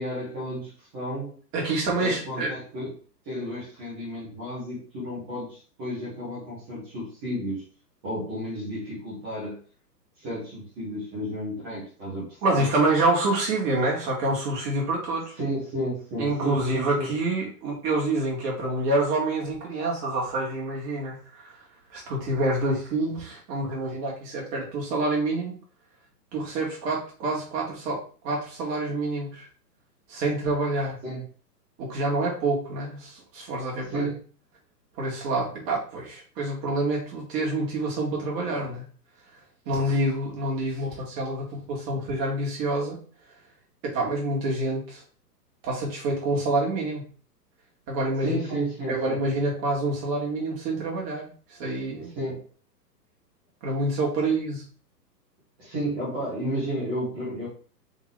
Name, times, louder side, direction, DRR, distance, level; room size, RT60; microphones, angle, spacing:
voice 1, 0.0-1.4 1.9-2.9 3.2-7.6 8.0-9.6 10.2-12.6 15.4-17.1 31.0-31.2 33.9-34.2 48.2-49.2 52.0-52.4 55.6-57.5, equal, 5° right, -10 dB, 0.4 m, -32 dB
voice 2, 1.5-2.5 12.4-15.3 16.2-21.5 21.9-25.6 26.3-29.5 30.1-31.0 31.8-34.0 35.0-38.8 39.6-43.0 43.8-45.0 45.6-47.1 47.9-48.4 48.9-52.1 53.6-54.6, right 2 dB, 25° right, -3 dB, 1.7 m, -27 dB
4.0 x 3.5 x 3.3 m, 0.41 s
figure-of-eight pair, 115°, 50 cm